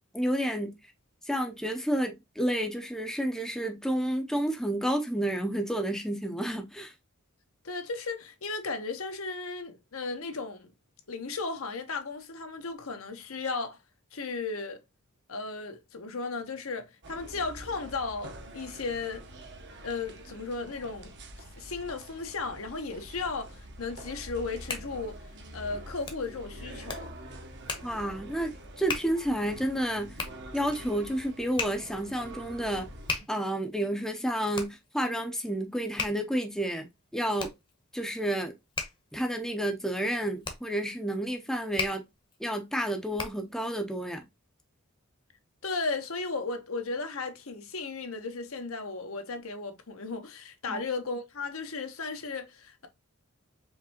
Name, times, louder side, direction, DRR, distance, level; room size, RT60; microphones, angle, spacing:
voice 1, 0.1-0.7 1.3-6.9 27.8-30.2 30.5-32.9 33.3-36.9 37.1-37.5 37.9-38.5 39.1-42.0 42.4-44.2 50.7-50.8, right 1 dB, ahead, 0.6 m, -30 dB
voice 2, 7.6-10.7 11.1-13.8 14.1-14.8 15.3-19.3 19.8-21.1 21.6-25.2 25.5-27.1 45.6-52.9, left 4 dB, 70° left, 1.0 m, -35 dB
sound 1, 17.0-33.2, right 1 dB, 55° right, 0.9 m, -46 dB
Hands, 24.3-43.6, left 4 dB, 25° left, 0.9 m, -40 dB
4.9 x 3.2 x 2.8 m
head